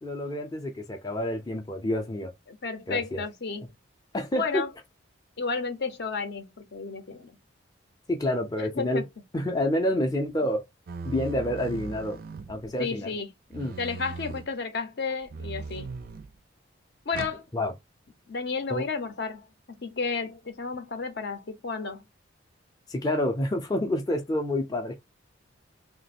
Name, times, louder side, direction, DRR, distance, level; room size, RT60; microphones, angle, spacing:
voice 1, 0.0-2.3 2.9-3.2 4.1-4.7 8.1-9.0 9.3-10.6 11.0-12.2 12.5-13.1 13.5-13.8 17.5-17.7 18.7-18.8 22.9-25.0, left 1 dB, 20° left, 0.5 m, -28 dB
voice 2, 2.5-3.6 4.3-4.7 5.4-7.4 8.6-9.1 12.6-13.3 13.8-15.9 17.1-17.4 18.3-22.0, left 4 dB, 55° left, 0.7 m, -32 dB
sound 1, 10.9-12.8 13.5-14.5 15.3-16.3 17.1-17.4, right 4 dB, 50° right, 0.4 m, -38 dB
2.9 x 2.1 x 4.1 m
head